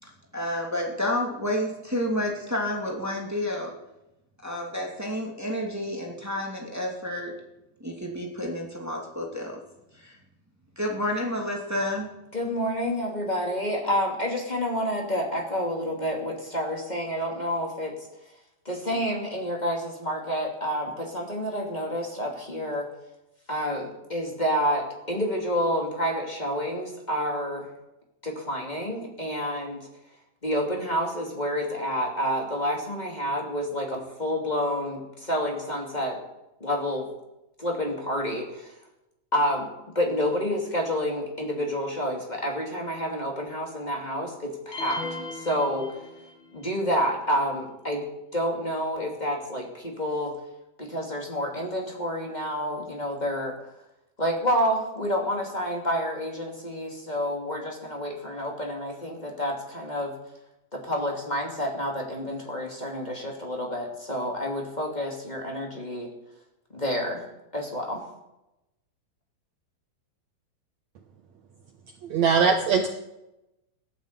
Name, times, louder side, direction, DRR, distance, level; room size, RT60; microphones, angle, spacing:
voice 1, 0.0-3.8 4.4-7.4 7.8-9.6 9.9-10.2 10.8-12.1, left 1 dB, 5° right, -1 dB, 1.8 m, -30 dB
voice 2, 12.3-17.9 18.6-22.9 23.5-27.7 28.2-29.9 30.4-36.2 36.6-37.1 37.6-38.7 39.3-45.9 46.5-48.1 48.3-50.4 50.8-53.6 54.2-60.1 60.7-66.1 66.7-67.3 67.5-68.0, equal, 15° left, 0 dB, 2.0 m, -29 dB
sound 1, 44.7-46.5, left 3 dB, 85° left, 1.0 m, -37 dB
voice 3, 72.0-72.9, right 6 dB, 65° right, 5 dB, 1.9 m, -21 dB
14.5 x 11.0 x 8.3 m, 0.93 s
omnidirectional pair, 4.2 m